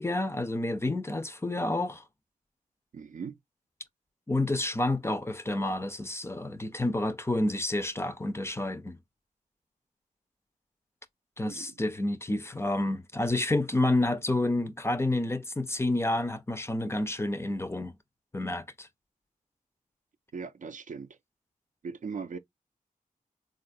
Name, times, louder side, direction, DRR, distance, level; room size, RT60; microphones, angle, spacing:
voice 1, 0.0-2.0 4.3-9.0 11.4-17.9 18.3-18.9, left 2 dB, 20° left, 0.4 m, -29 dB
voice 2, 2.9-3.3 11.4-11.7 20.3-21.2 21.8-22.4, right 5 dB, 65° right, 0.4 m, -39 dB
3.8 x 2.3 x 2.5 m
wide cardioid pair, 75°, 14 cm